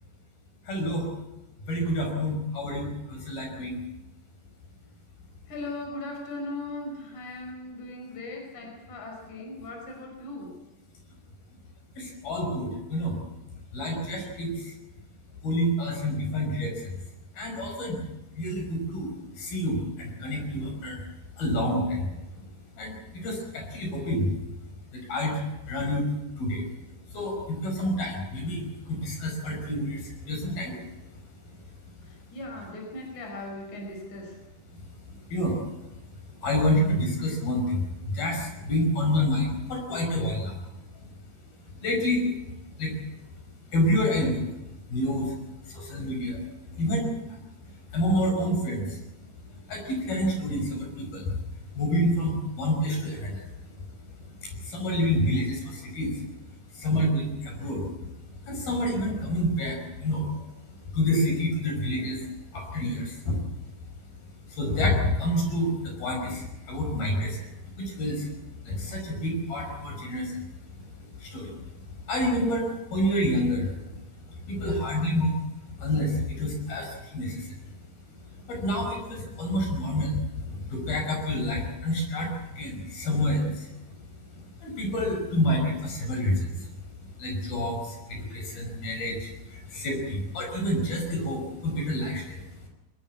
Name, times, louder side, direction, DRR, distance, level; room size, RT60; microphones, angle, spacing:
voice 1, 0.7-1.1 1.7-3.8 12.0-13.2 13.7-14.7 15.4-17.0 17.4-18.0 18.4-19.1 19.4-21.0 21.4-22.1 22.8-24.3 25.1-25.4 25.7-26.1 26.4-26.6 27.1-30.8 35.3-35.6 36.4-40.6 41.8-42.3 42.8-42.9 43.7-44.4 44.9-45.4 45.7-46.4 46.8-47.1 47.9-49.0 49.7-51.3 51.7-53.4 54.4-56.1 56.8-57.9 58.5-60.3 60.9-62.2 62.5-63.4 64.5-67.4 67.8-68.3 68.7-70.4 71.2-71.5 72.1-74.0 74.5-75.4 75.8-77.5 78.5-83.7 84.6-86.7 87.2-92.4, left 1 dB, 75° left, 2 dB, 7.2 m, -28 dB
voice 2, 5.5-10.5 32.0-34.4, left 2 dB, 50° left, 1 dB, 6.2 m, -38 dB
23.0 x 17.5 x 8.6 m, 0.98 s
omnidirectional pair, 4.3 m